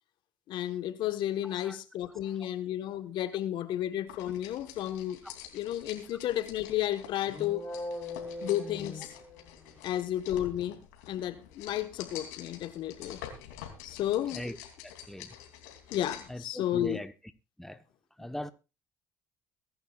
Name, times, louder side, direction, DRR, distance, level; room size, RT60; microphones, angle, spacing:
voice 1, 0.5-5.2 5.5-7.7 8.4-9.1 9.8-13.2 13.8-14.4 15.9-17.0, left 12 dB, 65° left, 1.3 m, -32 dB
voice 2, 1.4-1.8 2.2-2.5 5.2-5.3 8.3-8.5 14.3-14.6 14.8-15.3 16.3-17.1 17.6-17.8 18.2-18.5, left 1 dB, 5° left, 1.1 m, -40 dB
sound 1, 4.1-16.4, left 10 dB, 85° left, 3.0 m, -47 dB
sound 2, 7.2-9.8, left 2 dB, 25° left, 4.9 m, -40 dB
22.5 x 11.0 x 2.4 m
hypercardioid pair, 60°, 9 cm